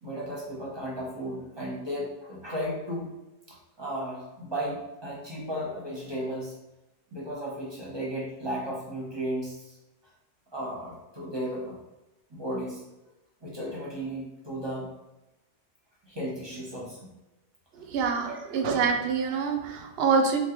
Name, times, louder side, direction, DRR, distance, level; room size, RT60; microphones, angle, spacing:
voice 1, 0.0-3.1 3.5-6.5 7.1-9.8 10.5-11.8 12.3-12.8 13.4-14.9 16.0-17.1 18.1-18.5, equal, 25° right, -4 dB, 0.8 m, -35 dB
voice 2, 17.8-20.4, right 5 dB, 65° right, 4 dB, 0.8 m, -26 dB
3.7 x 2.9 x 2.9 m, 0.99 s
omnidirectional pair, 1.2 m